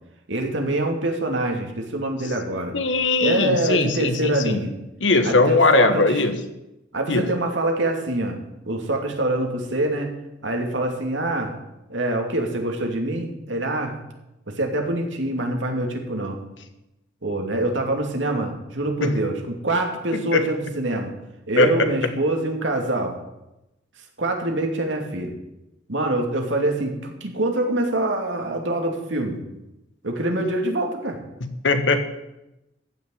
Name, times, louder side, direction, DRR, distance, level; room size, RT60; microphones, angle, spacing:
voice 1, 0.3-2.7 3.2-4.7 5.2-6.2 6.9-8.4 8.7-10.1 10.4-11.5 11.9-13.9 14.5-16.4 17.2-21.1 21.5-23.2 24.2-25.3 25.9-29.4 30.0-31.2, right 1 dB, 90° right, 2 dB, 2.7 m, -25 dB
voice 2, 2.7-4.6 5.0-6.3 7.1-7.3 19.0-19.2 20.3-20.4 21.6-21.9 31.4-32.0, left 3 dB, 90° left, 8 dB, 1.5 m, -20 dB
15.0 x 6.5 x 9.0 m, 0.93 s
head